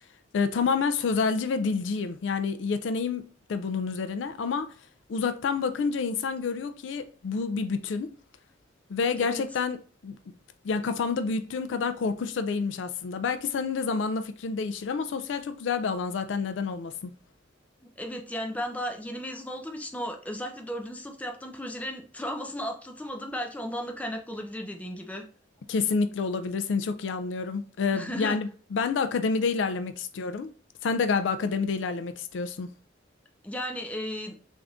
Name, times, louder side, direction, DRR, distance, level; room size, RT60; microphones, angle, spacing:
voice 1, 0.3-4.7 5.1-8.1 8.9-9.8 10.0-10.2 10.6-17.1 25.7-30.5 30.8-32.7, left 5 dB, 75° left, 0.4 m, -28 dB
voice 2, 17.8-25.2 27.9-28.4 33.4-34.3, equal, 10° left, 0.5 m, -35 dB
3.4 x 2.6 x 3.5 m
head